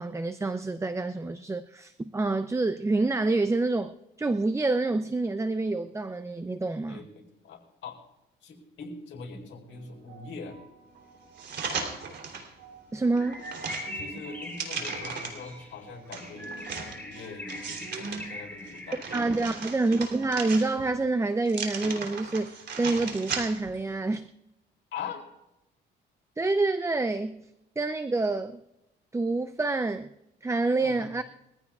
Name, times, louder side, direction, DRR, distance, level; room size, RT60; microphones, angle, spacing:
voice 1, 0.0-7.0 12.9-13.4 19.1-24.3 26.4-27.5 27.8-28.6 29.1-30.1 30.4-31.2, right 3 dB, 15° right, 0.5 m, -27 dB
voice 2, 6.9-8.0 8.4-10.6 13.9-19.5 24.9-25.2 30.8-31.1, left 5 dB, 70° left, 4.2 m, -42 dB
sound 1, 9.7-19.7, right 4 dB, 85° right, 5.9 m, -53 dB
sound 2, 11.4-12.5 13.0-15.5 16.1-18.2 18.7-21.0 21.5-23.8 24.1-24.2, right 5 dB, 60° right, 3.4 m, -36 dB
Bird, 13.2-19.5, left 1 dB, 10° left, 4.7 m, -42 dB
23.0 x 15.5 x 2.4 m
cardioid pair, 90°, 20 cm